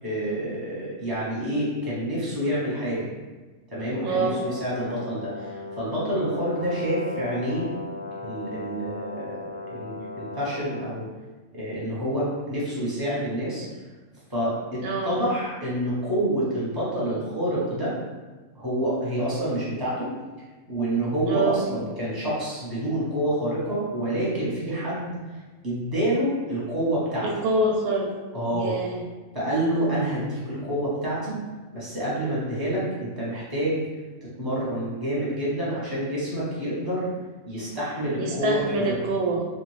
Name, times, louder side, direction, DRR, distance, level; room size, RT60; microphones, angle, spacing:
voice 1, 0.0-3.1 3.7-7.7 8.2-11.1 11.5-13.6 14.3-17.9 18.5-20.1 20.7-25.2 25.6-27.3 28.3-28.8 29.3-31.4 31.7-33.9 34.4-37.0 37.5-38.9, right 1 dB, 20° right, -8 dB, 0.7 m, -28 dB
Brass instrument, 3.9-10.9, left 2 dB, 65° left, 0.7 m, -37 dB
voice 2, 4.0-4.4 14.8-15.2 21.3-21.7 27.2-28.1 28.5-29.0 38.2-39.5, right 2 dB, 85° right, 0 dB, 1.1 m, -25 dB
2.5 x 2.5 x 3.1 m, 1.3 s
omnidirectional pair, 1.5 m